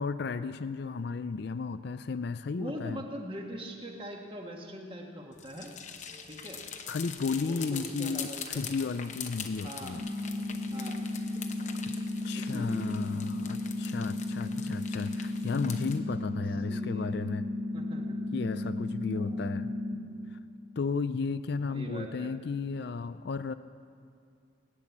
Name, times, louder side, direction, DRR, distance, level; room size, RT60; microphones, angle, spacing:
voice 1, 0.0-3.0 6.9-10.0 12.2-17.5 18.3-19.7 20.8-23.5, left 4 dB, 55° left, 13 dB, 0.4 m, -34 dB
voice 2, 2.6-5.7 6.3-6.6 7.4-8.6 9.6-10.0 10.7-11.0 12.3-12.9 16.7-17.1 17.7-18.2 19.1-19.5 21.7-22.3, equal, 25° right, 1 dB, 1.6 m, -42 dB
sound 1, 5.3-16.0, left 7 dB, 35° left, 0.9 m, -43 dB
sound 2, 9.9-19.9, left 2 dB, 5° left, 1.9 m, -34 dB
19.5 x 10.0 x 7.3 m, 2.4 s
head